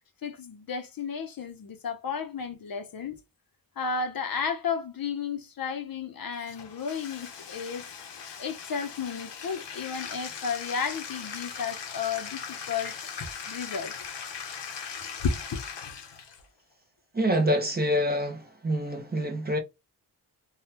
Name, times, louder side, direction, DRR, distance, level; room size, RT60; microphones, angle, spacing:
voice 1, 0.2-3.2 3.8-7.8 8.4-12.9 13.5-13.9 15.2-15.6, left 6 dB, 55° left, 0.7 m, -33 dB
Bathtub (filling or washing), 6.4-16.4, left 6 dB, 85° left, 0.9 m, -40 dB
voice 2, 17.1-19.6, equal, 25° right, 0.8 m, -26 dB
3.5 x 2.3 x 2.8 m
wide cardioid pair, 135°, 41 cm